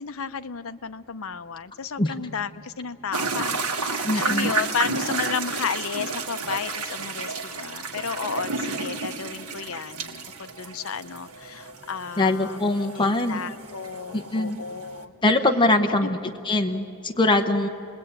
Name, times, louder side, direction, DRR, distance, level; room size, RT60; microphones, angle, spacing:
voice 1, 0.0-12.6 13.0-15.1 16.0-16.3, left 6 dB, 65° left, 12 dB, 0.7 m, -33 dB
sound 1, 3.1-15.0, right 4 dB, 90° right, 1.7 m, -31 dB
voice 2, 4.0-4.6 12.2-13.4 14.1-14.6 15.2-16.2 16.4-17.7, left 2 dB, 20° left, 4 dB, 0.8 m, -22 dB
29.5 x 20.0 x 8.8 m, 2.9 s
head